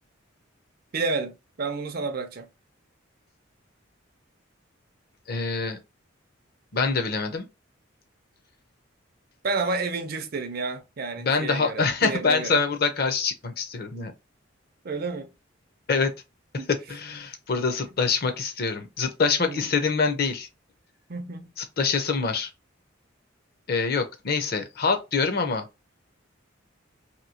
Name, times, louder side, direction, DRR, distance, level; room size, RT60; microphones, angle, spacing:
voice 1, 0.9-2.5 9.4-12.6 14.8-15.3 16.6-16.7 19.4-19.6 21.1-21.5, right 3 dB, 50° right, 0.5 m, -30 dB
voice 2, 5.3-5.8 6.7-7.4 11.2-14.1 15.9-16.1 16.5-20.5 21.6-22.5 23.7-25.7, left 4 dB, 50° left, 0.6 m, -25 dB
2.9 x 2.7 x 2.7 m
head